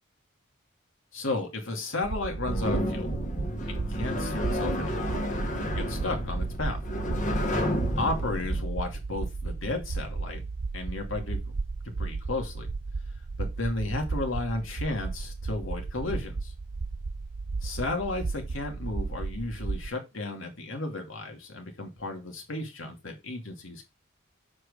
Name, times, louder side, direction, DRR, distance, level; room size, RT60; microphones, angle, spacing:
voice 1, 1.1-3.1 3.7-5.1 5.6-6.8 8.0-10.4 10.7-11.4 11.8-12.7 13.4-16.5 17.6-23.9, left 2 dB, 80° left, 3 dB, 2.6 m, -33 dB
sound 1, 2.0-19.9, right 3 dB, 55° right, 0.6 m, -34 dB
sound 2, 2.4-8.6, left 1 dB, 40° left, 1.6 m, -31 dB
7.6 x 4.9 x 5.1 m, 0.25 s
head